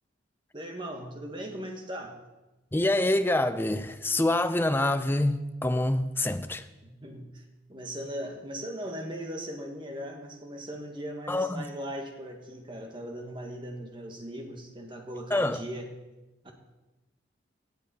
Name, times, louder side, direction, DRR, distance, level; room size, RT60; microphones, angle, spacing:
voice 1, 0.5-2.2 6.8-7.4 7.7-15.9 16.4-16.5, equal, 25° right, 1.6 m, -38 dB
voice 2, 2.7-6.7 11.3-11.7 15.3-15.6, left 1 dB, 10° left, 0.5 m, -26 dB
18.0 x 7.9 x 4.3 m
head